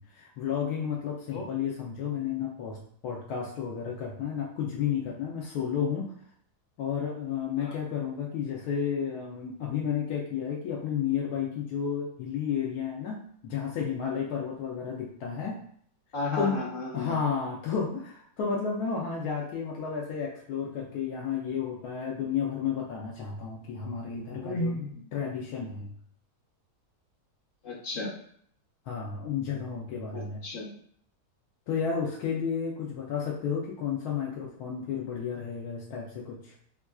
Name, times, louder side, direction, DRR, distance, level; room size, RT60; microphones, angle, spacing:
voice 1, 0.0-6.1 6.8-15.6 16.4-16.6 16.9-24.8 25.1-25.9 28.9-30.4 31.7-36.5, left 7 dB, 85° left, -2 dB, 1.1 m, -32 dB
voice 2, 16.1-17.2 24.4-25.0 27.6-28.1 30.1-30.7, left 2 dB, 45° left, -3 dB, 0.8 m, -33 dB
4.4 x 2.4 x 2.3 m, 0.63 s
omnidirectional pair, 1.6 m